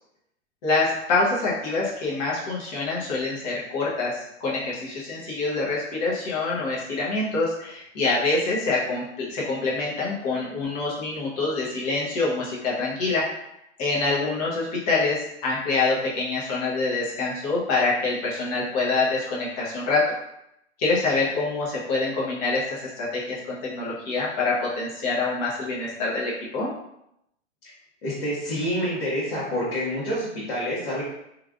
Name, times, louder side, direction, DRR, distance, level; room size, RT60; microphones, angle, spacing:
voice 1, 0.6-13.2 13.8-20.1 20.8-23.4 23.6-26.7, left 3 dB, 35° left, -5 dB, 0.9 m, -26 dB
voice 2, 28.0-31.0, equal, 50° left, -9 dB, 1.3 m, -27 dB
3.2 x 2.5 x 2.3 m, 0.80 s
hypercardioid pair, 145°, 35 cm